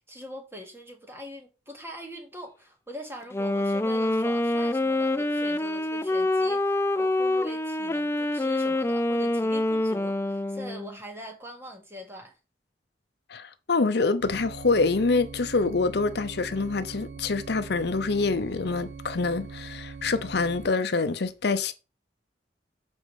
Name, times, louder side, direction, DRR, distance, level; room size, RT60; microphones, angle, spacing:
voice 1, 0.0-12.4, equal, 15° right, 1.9 m, -43 dB
Wind instrument woodwind instrument, 3.2-10.9, left 1 dB, 15° left, 0.4 m, -26 dB
voice 2, 13.3-21.7, left 3 dB, 65° left, 0.7 m, -26 dB
sound 1, 14.2-20.7, right 4 dB, 75° right, 0.5 m, -42 dB
7.1 x 5.1 x 4.8 m
head